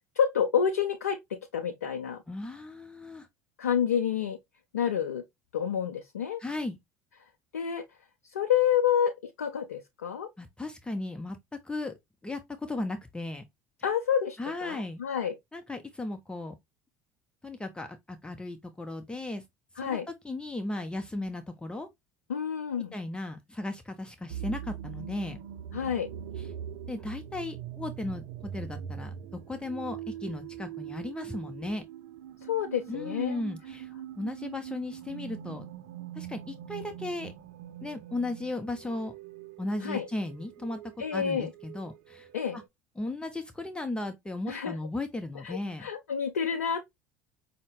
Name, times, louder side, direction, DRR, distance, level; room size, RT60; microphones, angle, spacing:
voice 1, 0.2-2.2 3.6-4.4 4.7-5.2 5.5-6.4 7.5-7.8 8.3-10.3 13.8-15.3 19.8-20.1 22.3-22.9 25.7-26.1 32.5-33.4 39.8-40.1 41.0-41.5 42.3-42.6 44.5-44.8 45.4-46.9, left 8 dB, 90° left, 0.4 m, -29 dB
voice 2, 2.3-3.3 6.4-6.8 10.4-11.9 12.2-13.4 14.4-15.0 15.5-16.5 17.4-19.4 19.8-20.0 20.2-21.9 22.9-25.4 26.4-26.5 26.9-29.1 29.5-31.8 32.9-35.7 36.1-37.3 37.8-39.1 39.6-40.8 41.1-42.3 42.5-42.6 43.0-45.9, left 2 dB, 10° left, 0.7 m, -36 dB
sound 1, 24.3-42.7, right 10 dB, 70° right, 0.5 m, -42 dB
5.4 x 2.1 x 3.1 m
hypercardioid pair, 75°, 8 cm